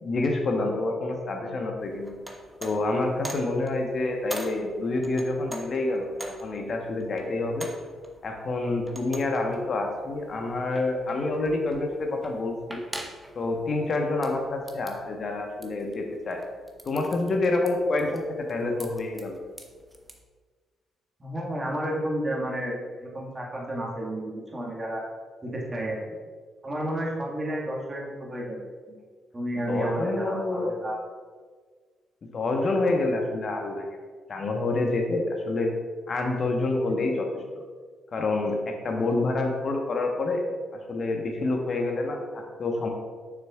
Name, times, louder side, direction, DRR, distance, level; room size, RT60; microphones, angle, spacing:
voice 1, 0.0-2.1 2.6-7.7 8.2-12.8 13.3-16.4 16.8-19.4 29.5-30.8 32.2-33.9 34.3-35.7 36.1-37.3 38.1-40.4 40.9-42.9, left 2 dB, 50° left, 2 dB, 1.1 m, -27 dB
sound 1, 1.8-20.2, right 1 dB, 10° right, 1.0 m, -45 dB
voice 2, 21.2-25.0 25.4-26.0 26.6-28.6 28.9-29.0 29.3-31.0, right 1 dB, 30° right, -3 dB, 1.8 m, -31 dB
7.3 x 6.3 x 2.4 m, 1.5 s
hypercardioid pair, 40°, 0 cm